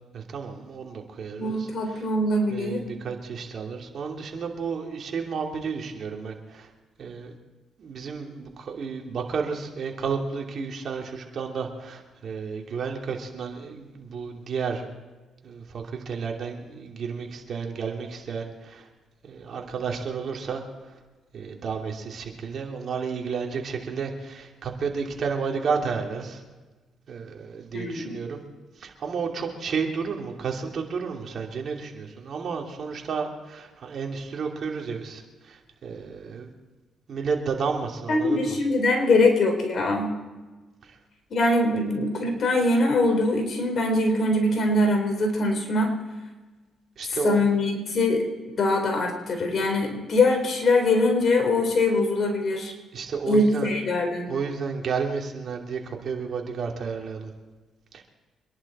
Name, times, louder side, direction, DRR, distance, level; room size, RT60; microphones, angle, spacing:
voice 1, 0.1-2.0 2.5-6.7 7.0-7.3 7.8-14.9 15.4-18.9 19.2-20.6 21.3-26.4 27.1-28.4 28.8-36.5 37.1-38.6 47.0-47.4 52.9-53.7 54.3-57.3 57.9-58.0, right 5 dB, 55° right, 1 dB, 2.8 m, -32 dB
voice 2, 1.4-2.8 27.7-28.2 38.1-40.1 41.3-45.9 47.1-48.2 48.6-52.7 53.3-54.3, left 2 dB, 50° left, 3 dB, 4.0 m, -23 dB
25.5 x 11.0 x 4.3 m, 1.2 s
cardioid pair, 90°, 0 cm